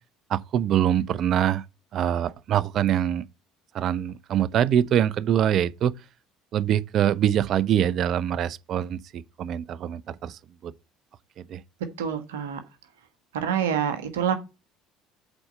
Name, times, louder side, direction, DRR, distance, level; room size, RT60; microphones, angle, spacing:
voice 1, 0.3-1.6 1.9-3.3 3.7-5.9 6.5-10.7 11.4-11.6, right 10 dB, 50° right, 0.6 m, -24 dB
voice 2, 12.0-12.6 13.3-14.3, right 8 dB, 75° right, 1.5 m, -26 dB
8.0 x 4.2 x 6.6 m
figure-of-eight pair, 60°, 0 cm